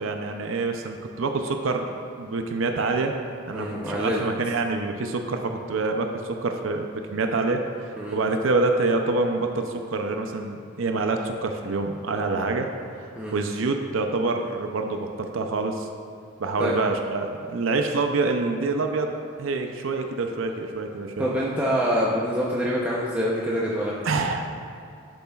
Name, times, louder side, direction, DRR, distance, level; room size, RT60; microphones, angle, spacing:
voice 1, 0.0-1.9 2.2-3.2 3.5-12.7 13.3-15.9 16.4-19.1 19.4-21.3 24.0-24.6, right 3 dB, 75° right, 4 dB, 0.5 m, -26 dB
voice 2, 3.5-4.2 8.0-8.2 13.2-13.3 16.6-16.8 21.2-23.9, equal, 5° right, -6 dB, 0.6 m, -25 dB
11.5 x 6.9 x 2.4 m, 2.4 s
head